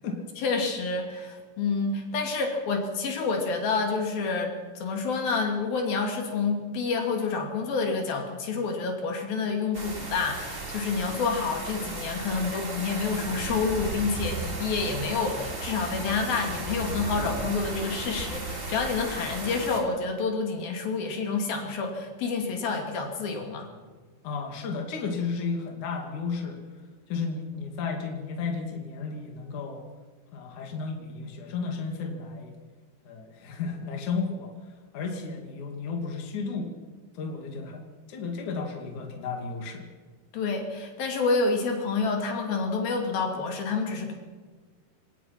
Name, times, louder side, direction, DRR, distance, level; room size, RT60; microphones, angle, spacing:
voice 1, 0.4-23.7 40.3-44.1, left 4 dB, 75° left, 2 dB, 4.5 m, -28 dB
sound 1, 9.7-19.8, right 2 dB, 20° right, 3.5 m, -35 dB
voice 2, 24.2-26.6 27.1-29.8 30.3-32.5 33.1-34.5 34.9-36.7 37.2-37.8 38.1-39.9, left 4 dB, 60° left, 2 dB, 3.7 m, -33 dB
27.5 x 18.0 x 6.0 m, 1.4 s
omnidirectional pair, 4.2 m